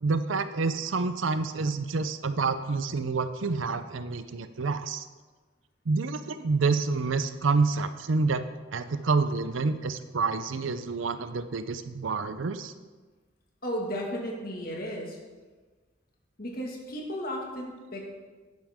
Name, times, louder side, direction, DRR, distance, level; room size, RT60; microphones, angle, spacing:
voice 1, 0.0-5.0 5.9-8.4 8.7-12.7, right 4 dB, 90° right, 12 dB, 0.6 m, -28 dB
voice 2, 13.6-15.2 16.4-18.1, equal, 50° left, 0 dB, 1.8 m, -34 dB
10.5 x 10.5 x 3.6 m, 1.3 s
head